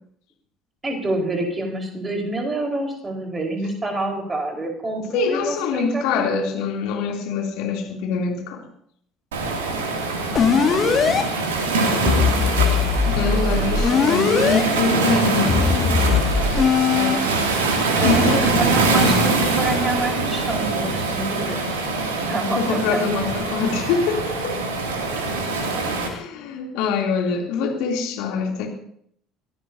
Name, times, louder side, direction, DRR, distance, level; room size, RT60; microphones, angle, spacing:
voice 1, 0.8-6.3 10.0-10.1 10.5-11.2 16.9-17.7 18.0-21.7 22.2-23.0, right 2 dB, 20° right, 2 dB, 4.7 m, -27 dB
voice 2, 5.1-8.6 12.2-12.3 12.7-15.7 18.0-18.4 22.6-24.6 26.0-28.7, left 5 dB, 60° left, 1 dB, 3.1 m, -24 dB
Waves surf, 9.3-26.1, right 3 dB, 70° right, 2.6 m, -23 dB
sound 1, 10.3-11.2 12.1-14.6 15.5-17.2, left 6 dB, 35° left, 2.1 m, -19 dB
23.0 x 17.0 x 2.8 m, 0.66 s
figure-of-eight pair, 60°, 0 cm